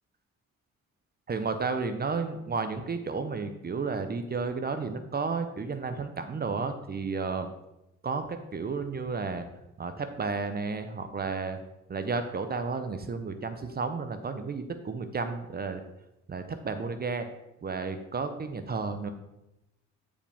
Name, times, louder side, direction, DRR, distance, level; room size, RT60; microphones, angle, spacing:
voice 1, 1.3-7.5 8.0-9.5 9.8-11.6 11.9-15.8 16.3-17.3 17.6-19.1, right 4 dB, 30° right, 9 dB, 0.7 m, -32 dB
8.9 x 5.0 x 3.5 m, 0.91 s
cardioid pair, 90°, 30 cm